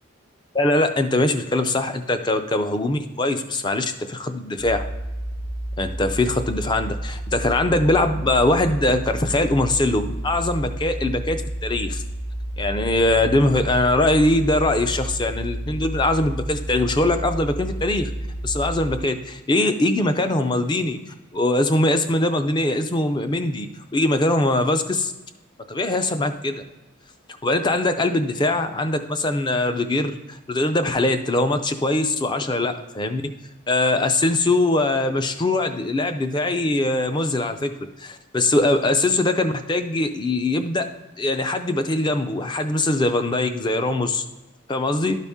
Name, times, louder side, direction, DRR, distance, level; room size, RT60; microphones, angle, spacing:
voice 1, 0.5-4.8 5.8-12.0 12.6-18.1 18.4-21.0 21.3-23.7 23.9-25.1 25.7-26.6 27.4-33.2 33.7-37.7 38.0-40.8 41.2-44.2 44.7-45.1, left 2 dB, 20° left, 8 dB, 0.4 m, -22 dB
sound 1, 4.6-19.0, right 1 dB, 40° left, 1.0 m, -31 dB
12.0 x 4.1 x 3.5 m, 1.1 s
head